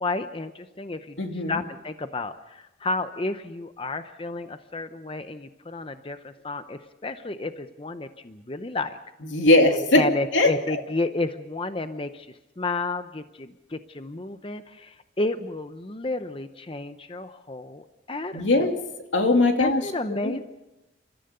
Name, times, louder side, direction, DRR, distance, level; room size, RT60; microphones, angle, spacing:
voice 1, 0.0-9.0 9.9-18.7 19.6-20.4, left 2 dB, 30° left, 10 dB, 0.7 m, -32 dB
voice 2, 1.2-1.6 9.3-10.0 10.3-10.8 18.3-18.7 19.1-19.8 20.2-20.4, left 2 dB, 80° left, 4 dB, 2.5 m, -20 dB
29.5 x 14.0 x 6.7 m, 0.96 s
head